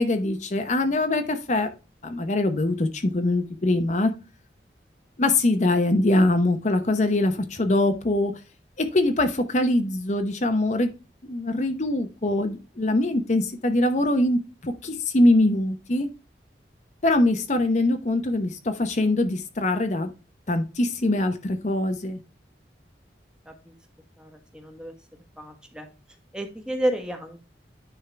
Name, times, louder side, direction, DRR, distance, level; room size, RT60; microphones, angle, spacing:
voice 1, 0.0-1.7 2.0-4.1 5.2-8.4 8.8-10.9 11.2-16.1 17.0-20.1 20.5-22.2, left 2 dB, 40° left, 7 dB, 0.8 m, -23 dB
voice 2, 24.2-24.9 25.4-25.9 26.3-27.4, right 1 dB, 5° right, 4 dB, 1.3 m, -30 dB
9.8 x 3.7 x 4.5 m, 0.30 s
head